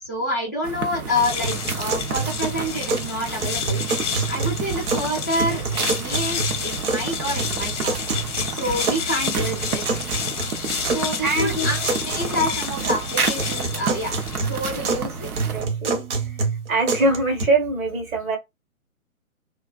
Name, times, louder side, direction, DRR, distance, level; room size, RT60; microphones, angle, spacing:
voice 1, 0.0-3.8 4.3-8.0 8.5-9.8 10.8-14.2 14.4-15.3, left 1 dB, 15° left, 0.3 m, -28 dB
sound 1, 0.6-15.7, right 5 dB, 90° right, 0.7 m, -31 dB
sound 2, 1.1-14.8, left 7 dB, 55° left, 0.7 m, -31 dB
sound 3, 1.4-3.1 3.4-5.1 5.4-7.1 7.4-9.0 9.4-11.0 11.4-13.1 13.4-15.1 15.4-17.4, right 4 dB, 55° right, 0.9 m, -28 dB
voice 2, 11.2-11.7 15.5-16.0 16.7-18.4, right 2 dB, 75° right, 1.2 m, -22 dB
2.3 x 2.3 x 2.3 m
figure-of-eight pair, 135°, 43 cm